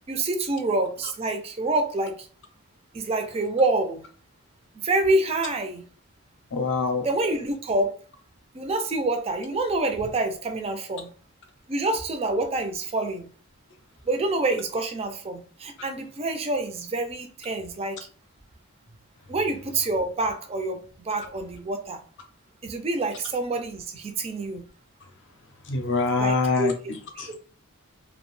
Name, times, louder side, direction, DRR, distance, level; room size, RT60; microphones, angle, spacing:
voice 1, 0.1-2.1 2.9-4.0 4.8-5.8 7.0-7.9 8.5-11.1 11.7-13.3 14.1-18.0 19.3-20.8 21.1-22.0 22.6-24.6 26.2-26.7 27.2-27.3, right 2 dB, 25° right, 6 dB, 0.4 m, -27 dB
voice 2, 6.5-7.0 25.7-27.3, left 3 dB, 55° left, 5 dB, 0.5 m, -25 dB
2.6 x 2.1 x 3.0 m, 0.43 s
head